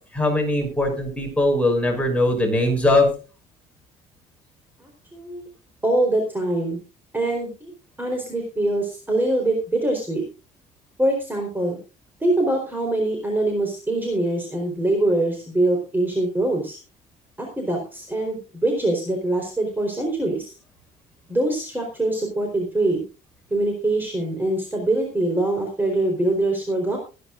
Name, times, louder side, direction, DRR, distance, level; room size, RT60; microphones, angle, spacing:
voice 1, 0.1-3.1, left 1 dB, 5° left, 0 dB, 6.1 m, -20 dB
voice 2, 4.8-5.5 5.8-6.8 7.1-7.7 8.0-10.2 11.0-11.8 12.2-16.8 17.4-20.5 21.3-23.0 23.5-27.0, right 2 dB, 10° right, 1 dB, 4.2 m, -23 dB
23.5 x 10.0 x 2.6 m, 0.33 s
cardioid pair, 110°, 17 cm